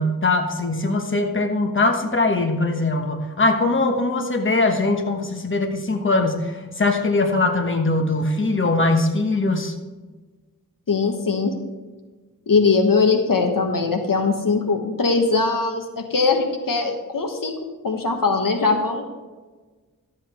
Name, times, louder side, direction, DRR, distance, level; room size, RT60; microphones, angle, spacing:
voice 1, 0.0-9.7, left 2 dB, 35° left, 4 dB, 1.2 m, -21 dB
voice 2, 10.9-11.5 12.5-19.0, left 4 dB, 75° left, 4 dB, 1.3 m, -21 dB
12.5 x 7.7 x 4.4 m, 1.3 s
wide cardioid pair, 70°, 33 cm